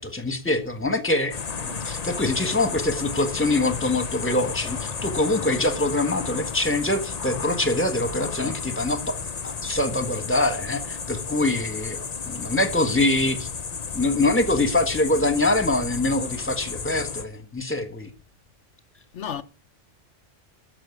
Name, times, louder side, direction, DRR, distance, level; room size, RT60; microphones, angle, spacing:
voice 1, 0.0-9.2 9.4-13.5 13.9-18.1, left 2 dB, 10° left, 1.5 m, -24 dB
sound 1, 1.3-17.2, left 5 dB, 35° left, 0.8 m, -33 dB
voice 2, 19.1-19.4, left 8 dB, 70° left, 1.1 m, -35 dB
13.0 x 6.2 x 9.6 m
omnidirectional pair, 1.3 m